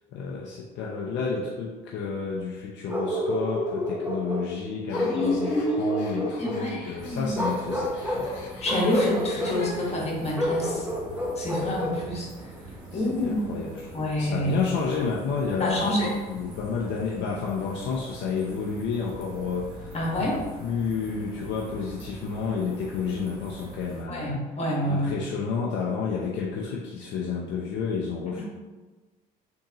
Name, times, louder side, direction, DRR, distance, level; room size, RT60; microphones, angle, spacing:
voice 1, 0.1-8.3 12.9-24.4 24.9-28.4, left 5 dB, 60° left, -3 dB, 0.6 m, -31 dB
Bark, 2.9-4.5 4.9-6.7 7.3-8.3 8.6-9.6 10.3-12.0, left 1 dB, 10° right, 0.9 m, -29 dB
sound 1, 4.9-9.9, left 3 dB, 90° left, 0.8 m, -38 dB
voice 2, 5.0-7.3 8.6-10.9 11.4-12.3 12.9-13.6 13.9-14.5 15.6-16.1 19.9-20.4 24.1-25.2 28.4-28.5, left 1 dB, 30° left, -3 dB, 1.5 m, -27 dB
sound 2, 7.0-24.0, right 1 dB, 45° right, 1.3 m, -44 dB
3.7 x 3.6 x 2.9 m, 1.3 s
supercardioid pair, 75°, 21 cm